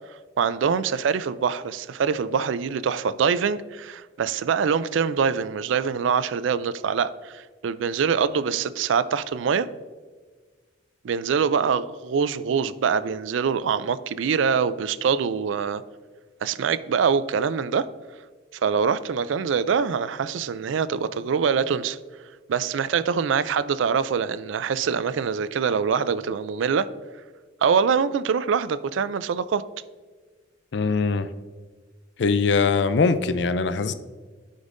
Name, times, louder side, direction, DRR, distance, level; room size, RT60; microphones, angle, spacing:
voice 1, 0.4-9.7 11.0-15.8 16.4-17.9 18.6-22.0 22.5-26.9 27.6-29.6, right 6 dB, 75° right, 15 dB, 0.4 m, -24 dB
voice 2, 30.7-31.3 32.2-33.9, left 4 dB, 60° left, 13 dB, 0.4 m, -22 dB
11.5 x 5.3 x 2.6 m, 1.4 s
head